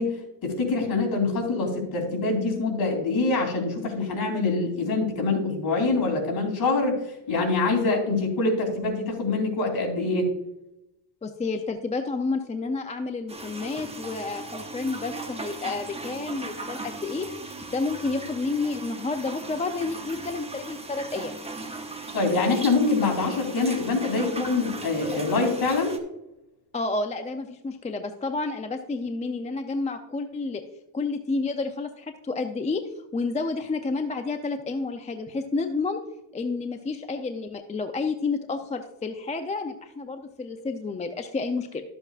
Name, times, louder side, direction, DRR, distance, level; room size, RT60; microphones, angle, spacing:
voice 1, 0.0-7.0 7.3-10.3 22.1-26.0, left 3 dB, 45° left, 1 dB, 3.1 m, -25 dB
voice 2, 11.2-17.3 17.7-21.4 26.7-30.6 30.9-32.8 33.1-36.0 36.3-41.8, left 3 dB, 15° left, 6 dB, 0.5 m, -30 dB
sound 1, 13.3-26.0, right 3 dB, 10° right, 1.0 m, -38 dB
12.5 x 7.8 x 2.4 m, 0.88 s
cardioid pair, 110°, 49 cm